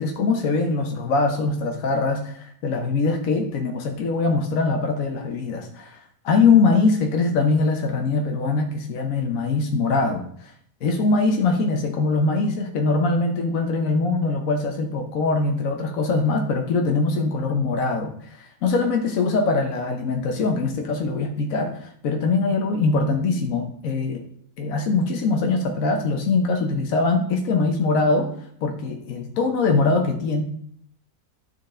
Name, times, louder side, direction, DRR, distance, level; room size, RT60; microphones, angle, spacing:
voice 1, 0.0-6.0 6.2-10.5 10.8-24.2 24.6-28.3 28.6-30.4, left 3 dB, 70° left, 3 dB, 1.3 m, -22 dB
12.0 x 4.9 x 3.8 m, 0.63 s
omnidirectional pair, 1.5 m